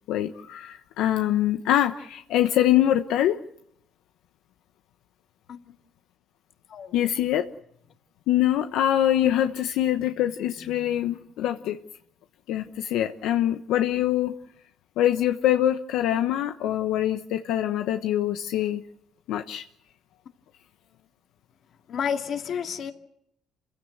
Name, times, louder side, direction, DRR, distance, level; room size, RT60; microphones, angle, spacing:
voice 1, 0.1-3.4 6.9-7.5 8.3-11.8 12.5-14.3 15.0-18.8 19.3-19.6, left 12 dB, 75° left, 1.1 m, -24 dB
voice 2, 6.7-7.0 21.9-22.9, left 7 dB, 50° left, 2.4 m, -31 dB
29.0 x 16.0 x 8.0 m
cardioid pair, 130°, 0 cm